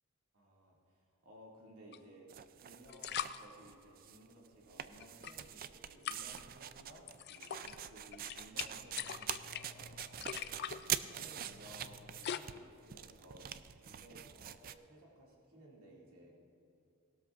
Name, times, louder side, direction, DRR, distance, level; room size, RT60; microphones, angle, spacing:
voice 1, 0.3-2.3 2.6-10.8 11.1-13.5 13.8-16.4, right 1 dB, 80° right, -3 dB, 2.4 m, -58 dB
sound 1, 1.9-2.0 2.9-3.4 5.0-5.6 6.1-6.4 7.1-7.8 8.1-12.4, left 9 dB, 50° left, 0.4 m, -43 dB
sound 2, 2.3-4.2 4.5-14.7, right 10 dB, 40° right, 0.3 m, -44 dB
19.0 x 12.5 x 2.5 m, 2.8 s
head